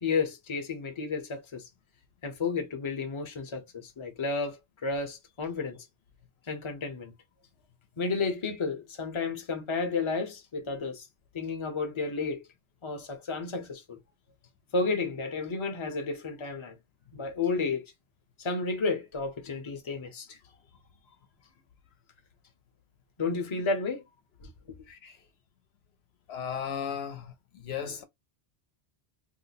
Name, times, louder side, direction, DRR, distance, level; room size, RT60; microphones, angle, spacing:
voice 1, 0.0-1.6 2.2-5.8 6.5-7.1 8.0-11.0 11.3-12.4 12.8-14.0 14.7-16.8 17.1-17.9 18.4-20.4 23.2-24.0 24.4-24.8, left 4 dB, 30° left, 0.7 m, -32 dB
voice 2, 26.3-28.0, left 8 dB, 70° left, 0.9 m, -36 dB
2.9 x 2.1 x 4.0 m
omnidirectional pair, 1.1 m